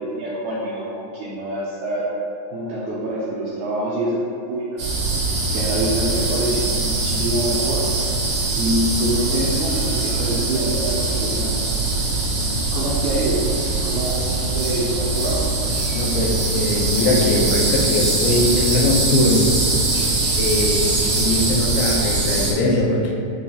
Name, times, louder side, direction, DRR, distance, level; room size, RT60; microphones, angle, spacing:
voice 1, 0.0-2.1 2.5-4.2 4.5-4.9 5.5-7.8 8.6-11.5 12.7-13.5 13.8-15.4, right 1 dB, 85° right, -6 dB, 1.7 m, -25 dB
sound 1, 4.8-22.5, right 2 dB, 65° right, 2.0 m, -22 dB
voice 2, 15.9-19.5 20.4-23.1, left 2 dB, 80° left, -1 dB, 2.2 m, -21 dB
6.3 x 2.4 x 2.7 m, 2.5 s
omnidirectional pair, 4.0 m